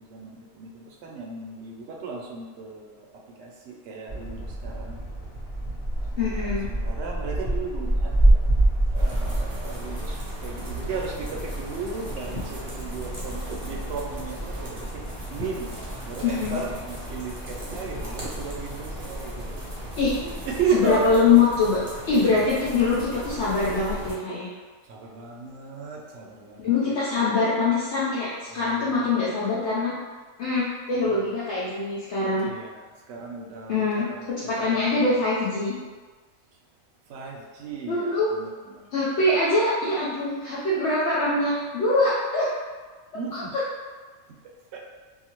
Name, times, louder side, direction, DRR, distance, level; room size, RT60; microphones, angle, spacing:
voice 1, 0.1-3.1 3.4-5.0 6.4-8.4 8.9-10.2 10.4-14.8 15.3-15.7 16.0-19.5 20.2-21.1 24.9-27.3 28.5-29.1 31.0-31.3 32.3-32.8 33.1-34.9 37.1-38.8 43.1-43.5 44.7-44.8, right 5 dB, 65° right, -2 dB, 0.8 m, -35 dB
sound 1, 4.1-20.6, right 1 dB, 30° left, 1.2 m, -28 dB
voice 2, 6.2-6.7 16.2-16.6 19.9-20.1 20.7-21.8 22.1-24.5 26.6-29.9 30.4-32.5 33.7-34.1 34.5-35.8 37.9-38.3 38.9-42.5 43.3-43.6, left 3 dB, 65° left, -8 dB, 0.8 m, -23 dB
sound 2, 8.9-24.1, equal, 40° right, 0.6 m, -38 dB
2.7 x 2.4 x 2.9 m, 1.4 s
omnidirectional pair, 1.4 m